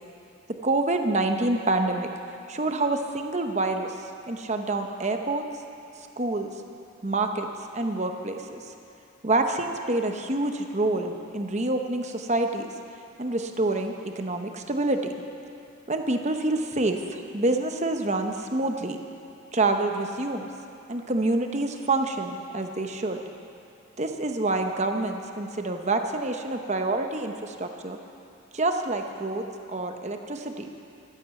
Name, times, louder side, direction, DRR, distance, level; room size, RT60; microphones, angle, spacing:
voice 1, 0.6-2.1 2.5-4.0 4.3-5.4 6.2-6.5 7.0-7.5 7.7-8.6 9.2-12.7 13.2-15.0 15.9-19.0 19.5-20.5 20.9-23.2 24.0-28.0 28.5-30.7, right 2 dB, 30° right, 5 dB, 0.9 m, -27 dB
15.0 x 12.5 x 7.1 m, 2.7 s
head